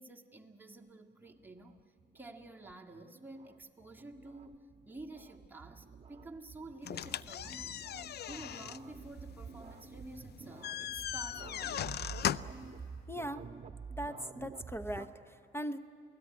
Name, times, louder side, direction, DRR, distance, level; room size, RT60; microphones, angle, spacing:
voice 1, 0.0-7.9 8.3-12.0, right 2 dB, 10° right, 0 dB, 1.9 m, -51 dB
sound 1, 1.1-15.1, right 5 dB, 35° right, 1.3 m, -50 dB
sound 2, 6.8-12.7, left 10 dB, 55° left, 0.5 m, -39 dB
voice 2, 13.1-13.4 13.9-15.8, equal, 10° left, 11 dB, 0.9 m, -39 dB
27.5 x 18.0 x 9.7 m, 2.6 s
cardioid pair, 90°, 20 cm